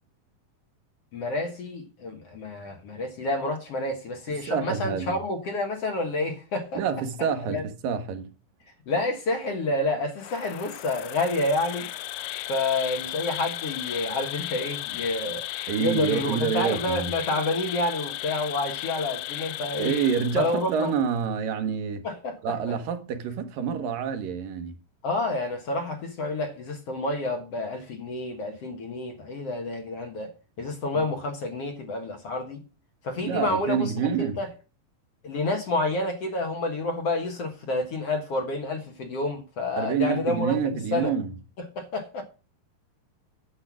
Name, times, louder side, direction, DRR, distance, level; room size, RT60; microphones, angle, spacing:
voice 1, 1.1-6.8 7.5-7.6 8.9-11.9 12.5-15.4 15.8-19.9 20.4-20.9 22.0-22.6 25.0-30.3 30.6-32.6 33.0-34.5 35.2-41.1 41.6-42.2, left 2 dB, 55° left, 2.1 m, -29 dB
voice 2, 4.3-5.2 6.8-8.3 15.7-17.1 19.8-22.0 22.4-24.8 30.9-31.0 33.2-34.4 39.8-41.3, right 7 dB, 75° right, 2.7 m, -27 dB
Insect, 10.2-20.9, left 15 dB, 80° left, 2.1 m, -35 dB
10.0 x 7.8 x 6.1 m
omnidirectional pair, 4.1 m